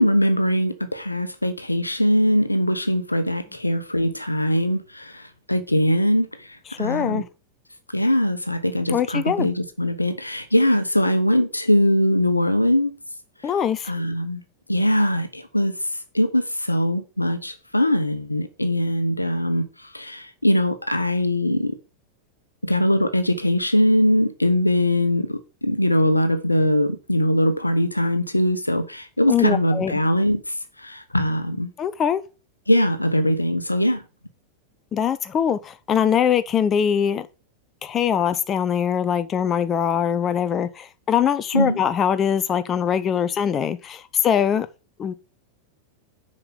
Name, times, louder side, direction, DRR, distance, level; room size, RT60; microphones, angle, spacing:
voice 1, 0.0-5.2 5.5-6.3 6.8-7.2 7.9-12.9 13.8-14.4 14.7-15.7 16.1-19.7 19.9-21.8 22.6-30.4 30.8-31.7 32.7-34.0 41.5-41.8, left 1 dB, 85° left, 1.0 m, -21 dB
voice 2, 6.8-7.2 8.9-9.5 13.4-13.9 29.3-30.0 31.8-32.2 34.9-37.3 37.8-44.7 45.0-45.1, left 8 dB, 25° left, 0.6 m, -22 dB
6.8 x 5.4 x 6.9 m
figure-of-eight pair, 90°, 0 cm